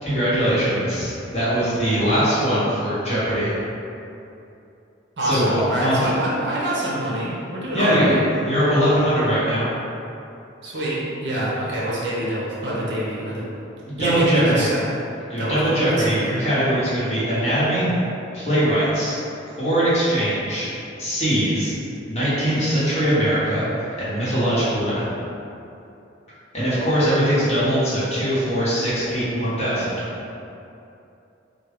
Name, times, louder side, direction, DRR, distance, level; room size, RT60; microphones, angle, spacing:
voice 1, 0.0-3.5 5.2-6.0 7.7-9.6 13.8-14.7 15.3-17.9 18.3-19.1 19.6-20.7 21.0-21.7 22.1-23.6 24.0-25.1 26.5-30.0, equal, 35° left, -11 dB, 1.0 m, -21 dB
voice 2, 5.2-8.2 10.6-13.4 14.0-14.8 15.4-16.3, right 1 dB, 60° right, -6 dB, 0.8 m, -25 dB
3.6 x 2.2 x 3.4 m, 2.7 s
head